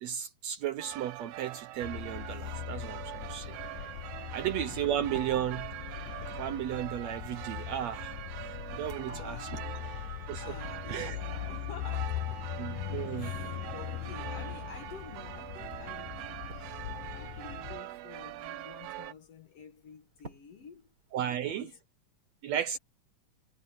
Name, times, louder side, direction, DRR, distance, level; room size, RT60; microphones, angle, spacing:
voice 1, 0.0-3.5 4.3-5.7 6.4-8.1 8.4-9.6 10.3-10.6 10.9-11.2 12.6-13.3 21.1-21.7 22.4-22.8, right 11 dB, 70° right, 1.7 m, -34 dB
sound 1, 0.8-19.1, right 15 dB, 90° right, 1.4 m, -43 dB
sound 2, 1.8-17.8, left 15 dB, 85° left, 2.2 m, -40 dB
sound 3, 3.7-21.7, right 2 dB, 30° right, 4.2 m, -58 dB
voice 2, 9.1-9.8 10.4-12.5 13.0-21.8, left 7 dB, 55° left, 2.4 m, -50 dB
omnidirectional pair, 3.7 m